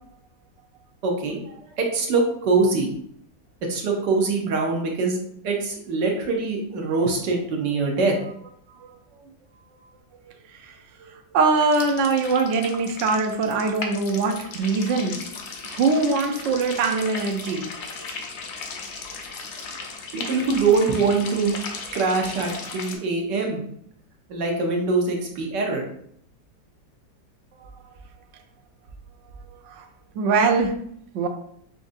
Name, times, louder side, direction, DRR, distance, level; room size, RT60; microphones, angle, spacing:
voice 1, 1.0-2.9 3.7-5.2 5.4-8.1 20.1-21.5 21.9-23.6 24.3-25.9, right 4 dB, 80° right, 1 dB, 1.5 m, -23 dB
voice 2, 10.5-15.2 15.6-17.7 18.0-18.1 27.6-27.7 29.6-29.8 30.1-30.8 31.1-31.3, right 4 dB, 65° right, 4 dB, 0.7 m, -23 dB
sound 1, 11.6-23.0, left 4 dB, 65° left, 0.7 m, -36 dB
6.2 x 2.5 x 2.6 m, 0.67 s
omnidirectional pair, 1.8 m